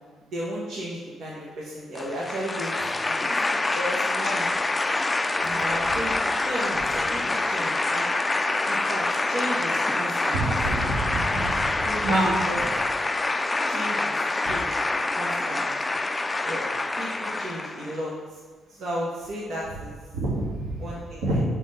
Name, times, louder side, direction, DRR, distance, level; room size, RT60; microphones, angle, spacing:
voice 1, 0.3-2.7 3.1-3.2 3.5-4.5 5.4-8.0 8.6-10.4 11.8-12.6 13.7-14.1 14.4-14.7 15.2-15.6 16.4-16.6 17.0-18.4 18.7-19.9 20.8-21.4, equal, 65° right, -5 dB, 1.5 m, -34 dB
sound 1, 1.9-18.0, left 2 dB, 20° left, 0.4 m, -26 dB
voice 2, 10.3-11.6 12.0-12.4 20.1-20.7 21.2-21.4, right 2 dB, 90° right, -5 dB, 2.1 m, -26 dB
5.5 x 5.2 x 5.6 m, 1.4 s
cardioid pair, 90°, 0 cm